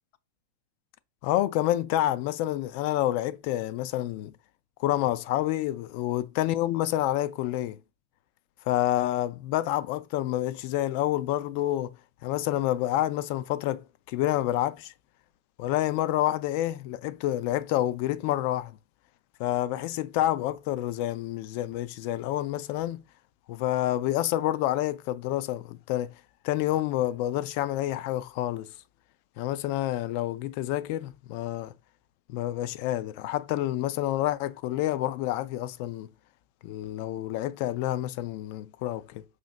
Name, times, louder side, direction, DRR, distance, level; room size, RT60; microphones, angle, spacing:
voice 1, 1.2-4.3 4.8-7.8 8.7-11.9 12.2-14.9 15.6-18.8 19.4-23.0 23.5-26.1 26.4-28.7 29.4-31.7 32.3-36.1 36.6-39.2, left 14 dB, 45° left, 0.3 m, -28 dB
5.0 x 2.8 x 2.3 m
figure-of-eight pair, 90°, 0 cm